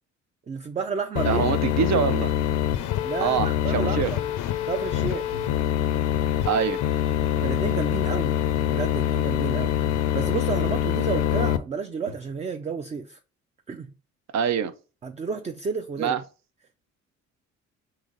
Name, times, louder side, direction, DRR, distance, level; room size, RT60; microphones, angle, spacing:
voice 1, 0.5-1.4 3.0-4.3 4.7-5.3 7.4-8.4 8.7-9.8 10.1-13.2 13.7-13.9 15.0-16.2, right 5 dB, 25° right, 0.3 m, -31 dB
sound 1, 1.2-11.6, left 11 dB, 90° left, 0.5 m, -25 dB
voice 2, 1.2-2.3 3.2-4.1 6.5-6.8 14.3-14.7 16.0-16.2, right 7 dB, 65° right, 0.6 m, -24 dB
sound 2, 5.3-6.0 6.3-6.4 7.4-8.3 8.5-8.6 9.5-9.6 9.8-10.2 11.5-11.6 11.8-12.4, left 1 dB, 80° right, 1.3 m, -45 dB
3.8 x 3.1 x 3.8 m
cardioid pair, 90°, 30 cm